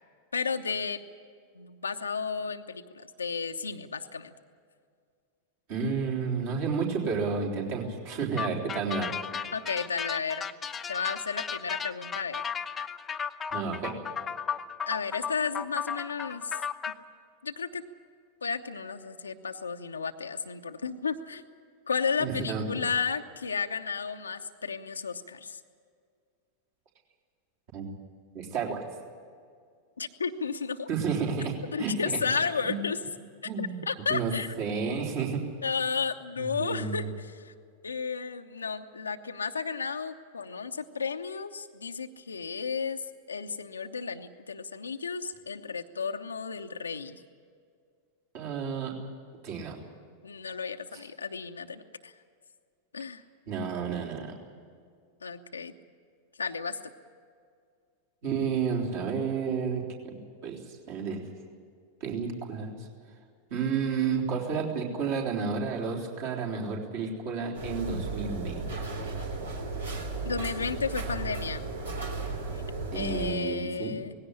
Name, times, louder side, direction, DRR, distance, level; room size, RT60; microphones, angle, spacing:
voice 1, 0.3-1.0 1.5-4.3 9.5-10.4 10.9-12.4 14.9-16.6 17.4-17.8 18.4-21.4 21.9-25.6 30.0-30.9 31.7-33.0 33.6-34.5 35.6-37.5 37.8-43.0 43.3-47.2 50.2-52.1 52.9-53.2 55.2-55.7 56.4-56.8 70.2-71.6 72.5-72.6 72.9-74.1, left 5 dB, 75° left, 5 dB, 0.8 m, -33 dB
voice 2, 5.7-9.1 13.5-14.0 22.2-22.8 27.7-27.9 28.3-28.8 30.9-32.2 32.6-32.8 33.4-33.8 34.1-35.4 36.4-37.1 48.3-49.0 49.4-49.8 50.9-51.0 53.5-54.4 58.2-60.2 60.4-61.3 62.0-62.9 63.5-69.1 72.9-73.9, right 5 dB, 50° right, -1 dB, 3.7 m, -31 dB
sound 1, 8.4-16.9, left 7 dB, 20° left, 0.8 m, -35 dB
sound 2, 67.5-73.3, right 3 dB, 70° right, 3.2 m, -35 dB
19.0 x 16.5 x 9.9 m, 2.2 s
figure-of-eight pair, 90°, 0 cm